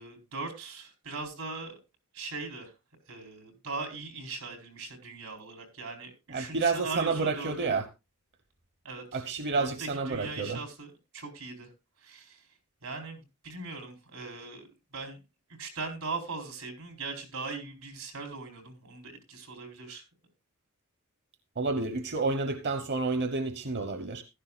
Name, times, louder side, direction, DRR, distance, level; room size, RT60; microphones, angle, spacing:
voice 1, 0.0-1.8 2.1-2.7 3.1-7.7 8.8-11.7 12.0-12.5 12.8-15.2 15.6-20.0, right 3 dB, 85° right, 4.3 m, -40 dB
voice 2, 6.3-7.8 9.1-10.6 21.6-24.2, right 4 dB, 55° right, 1.0 m, -29 dB
15.0 x 12.0 x 2.4 m
head